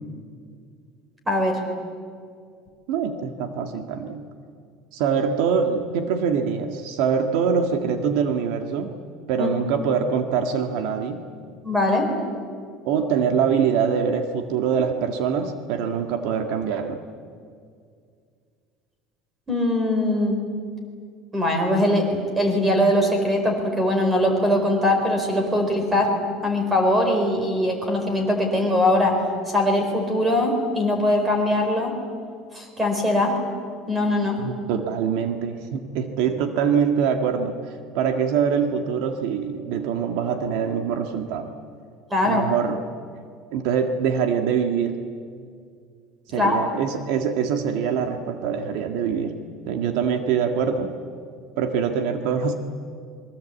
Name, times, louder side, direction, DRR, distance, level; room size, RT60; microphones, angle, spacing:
voice 1, 1.3-1.6 9.4-9.5 11.6-12.1 19.5-20.4 21.3-26.1 26.4-29.2 29.5-31.9 32.5-33.4 33.9-34.4 42.1-42.5 46.3-46.8, left 1 dB, 10° right, 4 dB, 4.4 m, -21 dB
voice 2, 2.9-4.2 4.9-9.0 9.3-11.2 12.9-17.0 34.4-41.5 42.2-42.8 43.5-45.0 46.3-49.4 49.7-51.0 51.6-52.5, right 7 dB, 65° right, 6 dB, 1.7 m, -24 dB
26.5 x 22.5 x 8.5 m, 2.2 s
cardioid pair, 175°, 0 cm